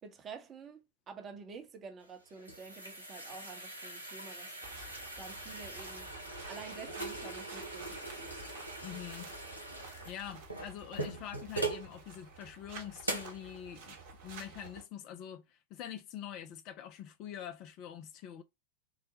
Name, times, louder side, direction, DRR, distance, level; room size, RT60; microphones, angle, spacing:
voice 1, 0.0-4.6 5.2-6.1 6.5-8.5, right 5 dB, 25° right, 0.8 m, -49 dB
sound 1, 2.0-11.9 12.4-12.5 13.0-13.4, right 2 dB, 90° left, 1.0 m, -41 dB
sound 2, 4.6-14.8, right 4 dB, 50° right, 1.1 m, -51 dB
voice 2, 8.8-9.3 10.1-14.0 14.2-18.4, left 10 dB, 40° left, 0.4 m, -45 dB
3.9 x 2.1 x 2.7 m
figure-of-eight pair, 90°, 0 cm